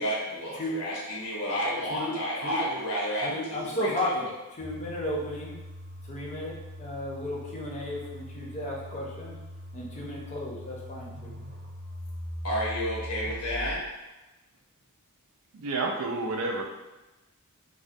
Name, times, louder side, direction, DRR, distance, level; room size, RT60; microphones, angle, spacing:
voice 1, 0.0-4.3 12.4-13.8, equal, 75° left, -5 dB, 0.8 m, -31 dB
voice 2, 3.2-4.3 4.6-5.6 6.1-9.3 9.7-11.3, left 1 dB, 30° left, -4 dB, 0.5 m, -34 dB
sound 1, 4.6-13.9, equal, 45° right, 0.7 m, -41 dB
voice 3, 15.5-16.6, right 3 dB, 80° right, 2 dB, 0.4 m, -30 dB
2.3 x 2.1 x 2.6 m, 1.0 s
head